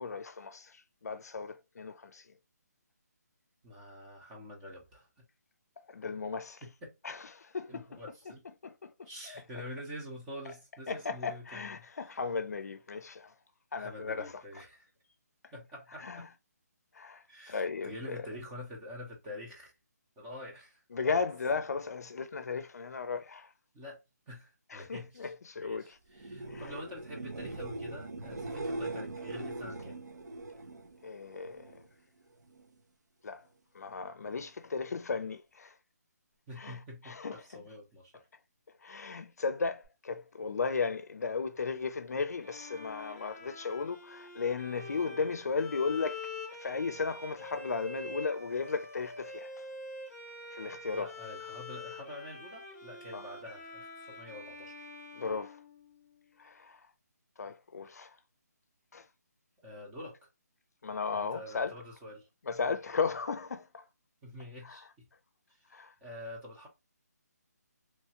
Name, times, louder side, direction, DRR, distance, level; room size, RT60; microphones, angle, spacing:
voice 1, 0.0-2.3 5.8-6.6 7.0-8.0 8.6-9.4 10.9-13.3 13.7-14.4 16.0-16.3 16.9-18.2 20.9-23.5 24.7-26.0 26.5-26.7 31.0-31.8 33.2-33.4 33.7-35.8 36.6-37.6 38.8-46.3 46.6-49.6 50.5-51.1 53.1-53.2 55.1-55.6 56.4-56.8 57.4-58.2 58.9-59.1 60.8-61.7 62.4-63.8 64.6-64.8 65.7-65.9, left 5 dB, 65° left, 0.5 m, -36 dB
voice 2, 3.6-5.2 6.6-6.9 7.7-8.4 9.0-11.8 13.8-14.9 15.5-16.2 17.3-19.7 20.2-21.2 23.7-24.0 24.3-25.3 25.6-30.0 36.5-38.1 50.9-54.9 59.6-60.3 61.1-62.3 64.2-65.1 65.5-65.6 66.0-66.7, left 1 dB, 10° right, 0.5 m, -46 dB
sound 1, 26.1-31.9 32.2-32.8 39.8-39.9, right 2 dB, 80° right, 0.8 m, -41 dB
Bowed string instrument, 42.4-56.3, left 2 dB, 10° left, 0.9 m, -46 dB
3.1 x 2.3 x 2.8 m
hypercardioid pair, 170°, 9 cm